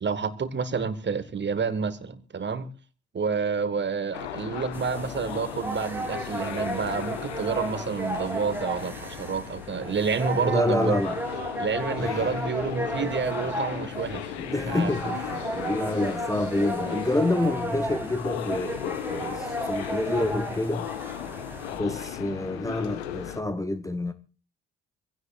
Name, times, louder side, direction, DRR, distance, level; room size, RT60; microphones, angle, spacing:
voice 1, 0.0-2.7 3.1-11.0 11.6-14.3 14.7-14.9, right 5 dB, 35° right, 1.6 m, -29 dB
sound 1, 4.1-23.4, left 10 dB, 75° left, 1.1 m, -37 dB
sound 2, 4.7-21.8, right 1 dB, 5° right, 3.0 m, -34 dB
voice 2, 10.3-11.2 12.0-12.3 14.4-20.9 21.7-24.1, left 2 dB, 10° left, 1.0 m, -28 dB
26.0 x 16.5 x 2.4 m
figure-of-eight pair, 40°, 33 cm